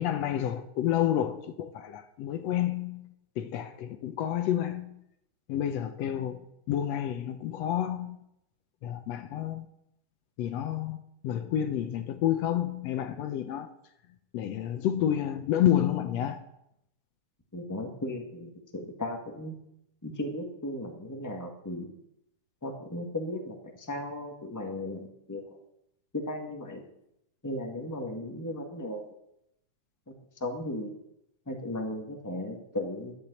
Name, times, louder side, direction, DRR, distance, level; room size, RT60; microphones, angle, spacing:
voice 1, 0.0-3.1 3.4-5.0 5.5-8.2 8.8-9.7 10.4-11.0 11.2-13.7 14.3-16.4, left 11 dB, 75° left, 1.5 m, -29 dB
voice 2, 17.5-19.5 20.0-21.9 22.6-25.6 26.1-26.8 27.4-29.1 30.1-30.9 31.5-33.1, left 1 dB, 15° left, 0.5 m, -36 dB
12.0 x 8.8 x 8.2 m
omnidirectional pair, 3.8 m